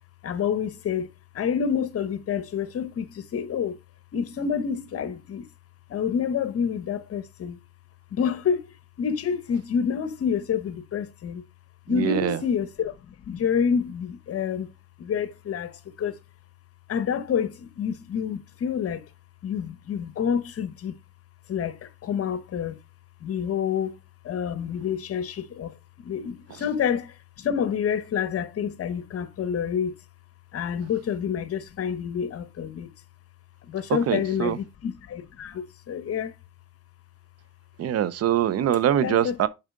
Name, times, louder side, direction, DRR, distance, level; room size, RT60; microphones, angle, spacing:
voice 1, 0.2-1.1 1.3-3.8 4.1-5.5 5.9-7.6 8.1-8.7 9.0-11.4 11.9-14.7 15.0-16.2 16.9-19.0 19.4-20.9 21.5-22.7 23.2-24.0 24.2-30.0 30.5-32.9 33.7-36.3 39.0-39.4, left 7 dB, 50° left, 1.0 m, -28 dB
voice 2, 11.9-12.4 34.1-34.6 37.8-39.5, right 11 dB, 55° right, 0.7 m, -23 dB
6.5 x 4.9 x 3.6 m
cardioid pair, 85°, 29 cm